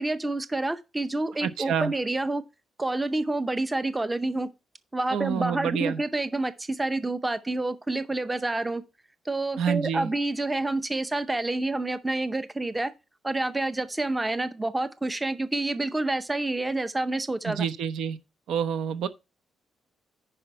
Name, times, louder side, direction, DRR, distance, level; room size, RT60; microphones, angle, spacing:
voice 1, 0.0-2.4 2.8-4.5 4.9-8.8 9.3-12.9 13.2-17.7, right 2 dB, 10° right, 0.6 m, -28 dB
voice 2, 1.4-1.9 5.1-6.0 9.6-10.1 17.4-18.2 18.5-19.1, right 8 dB, 80° right, 0.9 m, -28 dB
10.0 x 5.4 x 4.5 m
cardioid pair, 160°, 0 cm